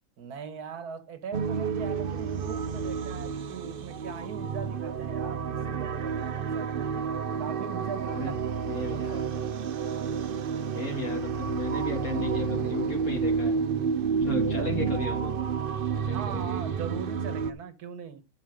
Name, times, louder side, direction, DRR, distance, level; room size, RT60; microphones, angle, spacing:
voice 1, 0.2-6.9 7.4-8.5 8.9-9.6 9.9-10.3 14.6-14.7 16.1-18.2, right 7 dB, 90° right, 1.7 m, -40 dB
sound 1, 1.3-17.5, right 6 dB, 55° right, 0.6 m, -30 dB
voice 2, 8.7-9.2 10.7-13.6 14.2-15.3 15.9-16.8, left 3 dB, 65° left, 2.4 m, -35 dB
10.5 x 5.7 x 4.9 m
omnidirectional pair, 1.6 m